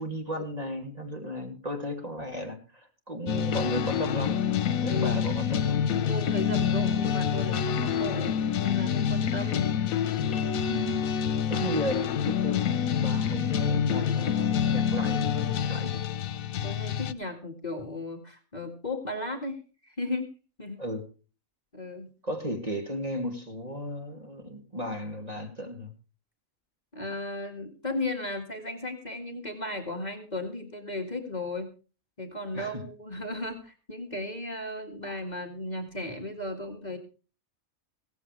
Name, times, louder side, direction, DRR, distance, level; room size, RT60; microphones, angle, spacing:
voice 1, 0.0-4.4 4.8-5.8 10.7-11.0 11.5-15.3 15.6-16.1 20.8-21.0 22.2-25.9 32.5-32.9, equal, 30° right, 4 dB, 2.6 m, -35 dB
sound 1, 3.3-17.1, left 8 dB, 80° left, 1.3 m, -27 dB
voice 2, 4.9-5.2 6.1-9.7 16.6-20.3 20.6-20.8 21.7-22.1 26.9-31.7 32.2-37.0, left 1 dB, 30° left, 4 dB, 2.1 m, -35 dB
16.5 x 15.0 x 3.3 m, 0.35 s
omnidirectional pair, 1.4 m